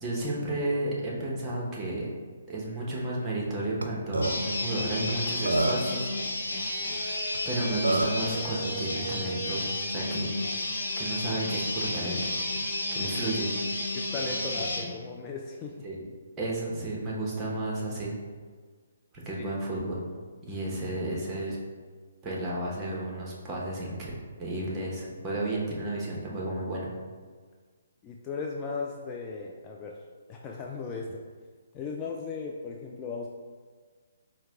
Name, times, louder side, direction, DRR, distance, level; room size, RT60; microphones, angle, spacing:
voice 1, 0.0-2.1 2.5-6.1 6.4-10.3 11.0-12.2 12.9-13.5 15.8-16.0 16.4-18.1 19.2-20.0 20.4-21.6 22.2-24.1 24.4-26.9, right 1 dB, 20° right, -4 dB, 0.9 m, -32 dB
Burping eructation, 3.8-3.9 4.1-4.3 5.1-5.2 5.5-6.0 7.3-7.4 7.8-8.2, right 2 dB, 85° right, 0.4 m, -26 dB
sound 1, 4.2-14.9, left 1 dB, 75° left, 0.7 m, -32 dB
voice 2, 13.9-15.8 19.3-19.4 28.0-30.0 30.3-31.2 31.7-33.3, left 4 dB, 20° left, -1 dB, 0.3 m, -36 dB
4.6 x 2.1 x 3.5 m, 1.5 s
figure-of-eight pair, 140°, 0 cm